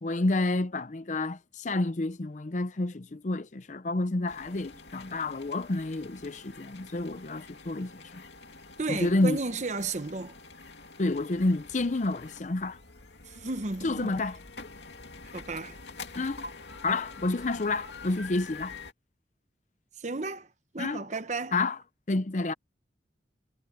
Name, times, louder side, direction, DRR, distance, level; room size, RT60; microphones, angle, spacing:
voice 1, 0.0-8.2 8.9-9.4 11.0-12.8 13.8-14.4 16.2-16.5 16.8-18.8 20.8-21.0 21.5-21.8 22.1-22.5, left 2 dB, 45° left, 0.6 m, -29 dB
sound 1, 4.3-18.9, left 4 dB, 80° left, 2.5 m, -47 dB
voice 2, 8.8-10.3 13.3-14.1 15.3-15.8 20.0-20.5 20.7-21.6, right 3 dB, 40° right, 1.0 m, -33 dB
head